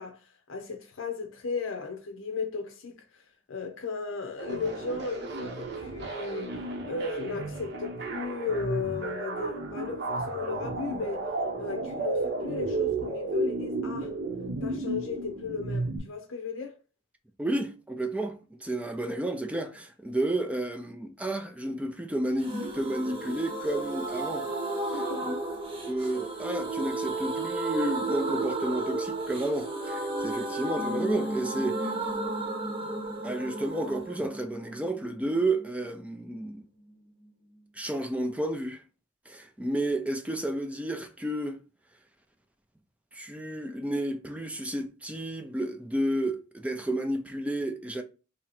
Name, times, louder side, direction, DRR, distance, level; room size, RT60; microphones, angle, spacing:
voice 1, 0.0-11.3 11.6-14.1 14.6-16.8 24.9-25.3, left 4 dB, 75° left, 0.6 m, -36 dB
sound 1, 4.4-16.0, right 2 dB, 55° right, 0.9 m, -33 dB
voice 2, 17.4-24.5 24.9-25.4 25.9-31.9 33.2-36.6 37.7-38.8 39.3-41.6 43.1-48.0, right 1 dB, 5° right, 0.4 m, -31 dB
sound 2, 22.4-36.0 36.3-36.4 36.6-36.7, right 2 dB, 30° right, 0.9 m, -33 dB
2.8 x 2.8 x 4.2 m
head